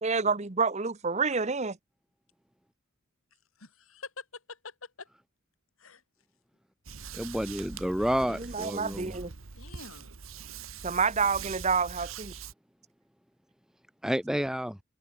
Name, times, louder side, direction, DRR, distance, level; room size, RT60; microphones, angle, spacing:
voice 1, 0.0-1.8 8.3-9.3 10.8-12.3, right 5 dB, 35° right, 1.1 m, -28 dB
voice 2, 3.6-5.1 5.8-6.0 9.6-10.1, left 4 dB, 85° left, 3.1 m, -46 dB
sound 1, 6.8-12.5, right 6 dB, 80° right, 1.2 m, -43 dB
voice 3, 7.1-9.2 14.0-14.8, equal, 5° right, 0.8 m, -30 dB
head